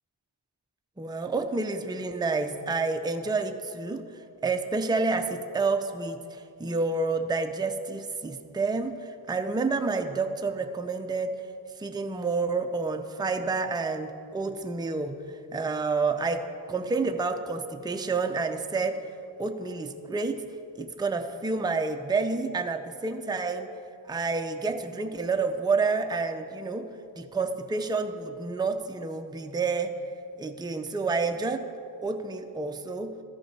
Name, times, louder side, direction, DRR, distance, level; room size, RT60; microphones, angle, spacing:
voice 1, 1.0-4.0 4.4-11.3 11.8-15.2 15.5-19.0 19.4-20.4 20.8-23.7 24.1-26.9 27.2-29.9 30.4-31.7 32.0-33.1, right 4 dB, 10° right, 6 dB, 0.5 m, -29 dB
13.5 x 5.2 x 4.6 m, 2.5 s
cardioid pair, 50°, 50 cm